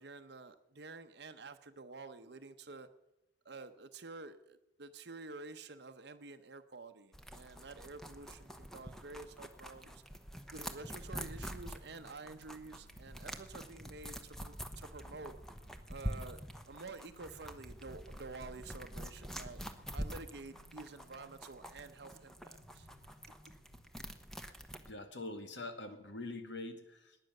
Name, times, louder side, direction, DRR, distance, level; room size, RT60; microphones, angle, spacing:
voice 1, 0.0-2.9 3.4-10.0 10.5-15.4 15.9-16.4 16.7-19.6 19.9-22.9, right 3 dB, 60° right, 8 dB, 0.9 m, -50 dB
sound 1, 7.1-24.9, equal, ahead, 1.0 m, -46 dB
sound 2, 11.1-23.9, equal, 20° left, 2.2 m, -61 dB
voice 2, 24.8-27.2, left 2 dB, 70° left, 7 dB, 2.1 m, -44 dB
19.0 x 10.0 x 6.6 m, 0.91 s
head